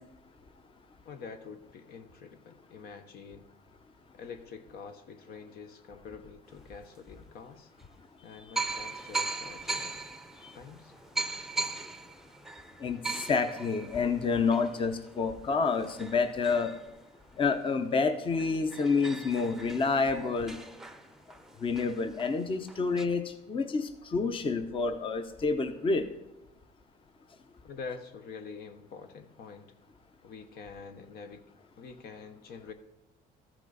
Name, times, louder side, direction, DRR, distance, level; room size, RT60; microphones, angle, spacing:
voice 1, 1.0-3.5 4.1-7.7 8.2-10.0 10.5-10.9 27.6-29.7 30.2-31.4 31.8-32.7, left 5 dB, 70° left, 7 dB, 1.0 m, -46 dB
sound 1, 6.8-6.9 7.8-7.9 8.6-17.7 18.1-18.2 18.4-23.0, right 3 dB, ahead, 0.6 m, -39 dB
voice 2, 12.8-16.7 17.4-20.6 21.6-26.0, left 4 dB, 30° left, 8 dB, 0.7 m, -28 dB
14.0 x 6.0 x 4.0 m, 0.94 s
cardioid pair, 110°, 17 cm